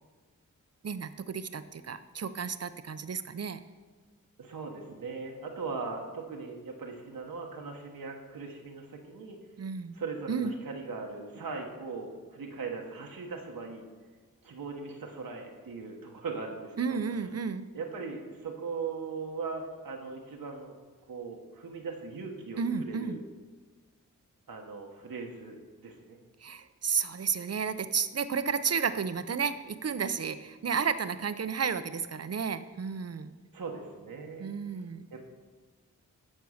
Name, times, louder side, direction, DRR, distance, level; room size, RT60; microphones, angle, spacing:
voice 1, 0.8-3.6 9.6-9.9 10.3-10.5 16.8-17.6 22.6-23.2 26.4-33.3 34.4-35.1, right 6 dB, 45° right, 12 dB, 0.7 m, -32 dB
voice 2, 4.4-9.4 9.9-13.8 14.4-17.0 17.7-20.7 21.1-23.2 24.5-26.2 33.5-34.5 35.1-35.3, right 4 dB, 80° right, 1 dB, 1.2 m, -39 dB
12.5 x 4.6 x 6.4 m, 1.4 s
cardioid pair, 50°, 34 cm